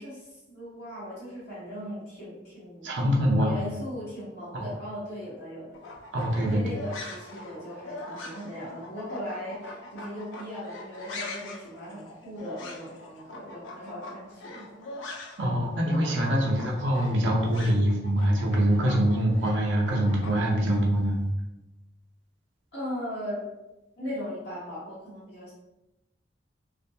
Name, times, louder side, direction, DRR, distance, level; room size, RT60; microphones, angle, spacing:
voice 1, 0.0-2.9 3.4-5.8 6.5-14.8 15.5-15.7 22.7-23.4 24.0-25.5, equal, 60° left, -10 dB, 1.1 m, -38 dB
voice 2, 2.8-3.5 4.5-4.7 6.1-6.6 15.4-21.2, equal, 75° right, -2 dB, 0.6 m, -24 dB
sound 1, 5.7-15.5 15.7-20.8, left 2 dB, 85° left, 0.4 m, -42 dB
2.5 x 2.2 x 2.7 m, 0.98 s
head